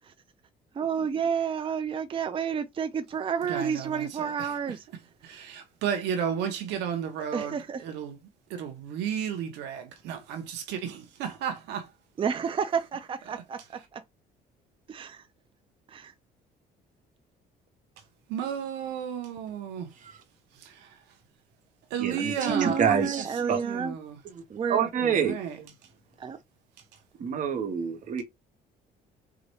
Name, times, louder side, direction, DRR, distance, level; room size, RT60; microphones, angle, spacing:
voice 1, 0.7-4.8 7.3-7.8 12.2-13.6 13.9-14.0 14.9-15.2 15.9-16.1 22.4-23.9 24.5-24.8 26.2-26.4, right 7 dB, 30° right, 0.6 m, -30 dB
voice 2, 3.4-4.7 5.2-8.2 8.5-11.9 13.3-13.4 18.3-19.9 20.5-21.0 21.9-24.2 25.0-25.6, right 8 dB, 90° right, 1.2 m, -33 dB
voice 3, 22.0-23.6 24.3-24.4 24.7-25.7 27.2-28.2, right 7 dB, 50° right, 1.2 m, -27 dB
4.9 x 2.6 x 3.1 m
cardioid pair, 110°, 17 cm